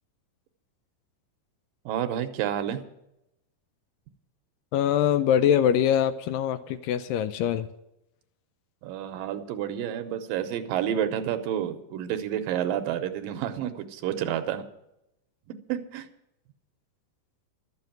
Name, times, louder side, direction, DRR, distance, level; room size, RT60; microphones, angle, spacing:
voice 1, 1.9-2.8 8.8-14.7 15.7-16.1, right 10 dB, 80° right, 9 dB, 2.5 m, -29 dB
voice 2, 4.7-7.7, left 9 dB, 80° left, 12 dB, 2.2 m, -23 dB
12.5 x 7.8 x 8.9 m, 0.84 s
omnidirectional pair, 4.1 m